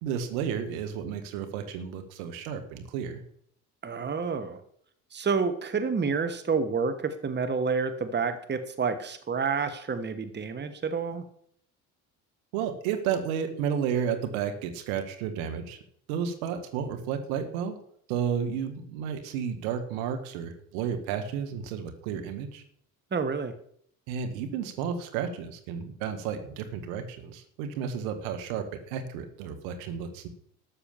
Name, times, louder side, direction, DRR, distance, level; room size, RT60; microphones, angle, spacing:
voice 1, 0.0-3.2 12.5-15.8 16.1-17.8 18.1-22.6 24.1-30.3, right 7 dB, 65° right, 6 dB, 1.9 m, -32 dB
voice 2, 3.8-4.6 5.1-11.2 23.1-23.5, right 5 dB, 25° right, 10 dB, 1.4 m, -29 dB
13.0 x 7.0 x 7.1 m, 0.65 s
figure-of-eight pair, 60°, 44 cm